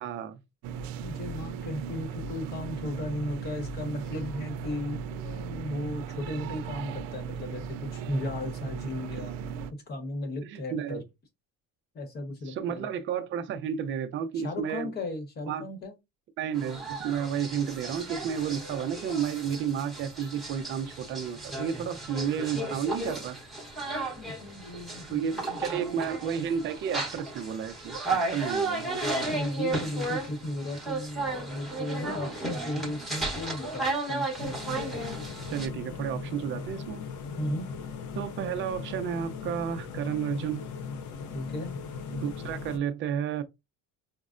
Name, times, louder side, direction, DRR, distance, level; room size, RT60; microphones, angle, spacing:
voice 1, 0.0-0.4 9.1-9.2 10.5-11.0 12.5-14.9 15.5-15.7 16.4-23.4 25.1-28.9 35.5-37.0 38.1-40.7 42.1-43.4, right 8 dB, 35° right, 0.4 m, -32 dB
sound 1, 0.6-9.7, right 6 dB, 90° right, 0.5 m, -37 dB
voice 2, 1.0-9.3 9.9-11.0 11.9-12.9 14.3-15.9 24.2-25.2 25.5-26.0 29.3-34.3 37.4-37.7 41.3-41.7, left 1 dB, 30° left, 0.9 m, -35 dB
sound 2, 16.5-35.7, right 2 dB, ahead, 0.9 m, -34 dB
sound 3, 34.4-42.8, left 5 dB, 60° left, 0.6 m, -38 dB
5.2 x 2.0 x 2.4 m
cardioid pair, 170°, 33 cm